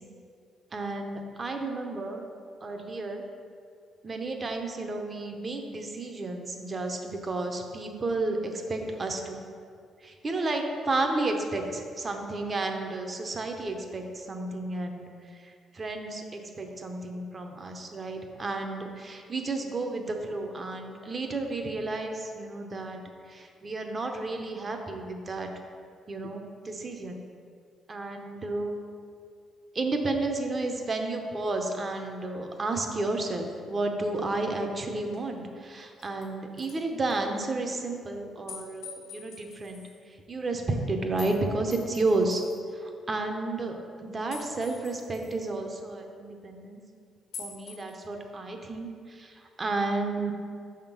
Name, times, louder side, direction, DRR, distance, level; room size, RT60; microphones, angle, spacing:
voice 1, 0.7-2.2 2.6-3.2 4.0-9.4 10.0-15.0 15.3-23.0 23.3-25.5 26.1-27.2 27.9-28.8 29.7-42.4 42.7-43.7 44.0-46.8 47.4-50.3, right 2 dB, 35° right, 4 dB, 0.8 m, -32 dB
sound 1, 35.1-35.2 35.8-36.2 36.6-36.8 37.1-37.2 38.5-40.0 41.2-41.4 41.7-42.6 44.3-45.4 47.3-47.9, left 5 dB, 90° left, 1.4 m, -45 dB
6.2 x 3.7 x 5.9 m, 2.3 s
cardioid pair, 90°, 0 cm